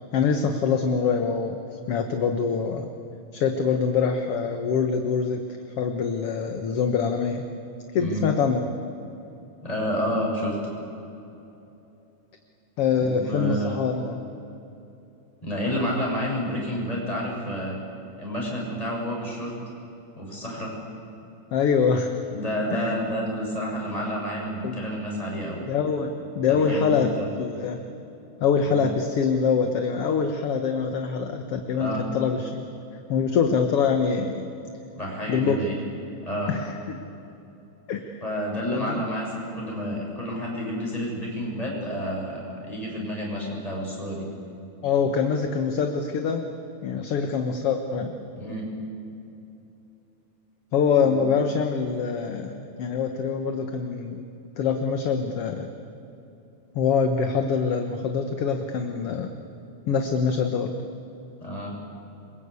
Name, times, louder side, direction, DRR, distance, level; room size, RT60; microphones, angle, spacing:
voice 1, 0.1-1.6 1.9-2.9 3.3-5.4 5.8-7.5 7.9-8.7 12.8-14.2 21.5-22.1 22.7-23.0 24.6-24.8 25.7-27.1 27.4-27.8 28.4-32.7 33.1-34.5 35.3-35.6 36.5-37.0 37.9-38.2 38.7-39.0 44.8-46.5 46.8-48.1 50.7-54.3 54.6-55.7 56.8-59.3 59.9-60.7, left 6 dB, 55° left, 5 dB, 1.9 m, -24 dB
voice 2, 9.6-10.6 13.0-13.8 15.4-17.8 18.2-19.5 20.2-20.7 22.3-25.7 26.5-27.2 28.6-28.8 31.7-32.1 34.9-35.8 36.2-36.5 38.2-44.3 48.3-48.7 61.4-61.8, equal, 10° left, -2 dB, 6.9 m, -30 dB
27.5 x 23.5 x 8.4 m, 2.9 s
omnidirectional pair, 3.8 m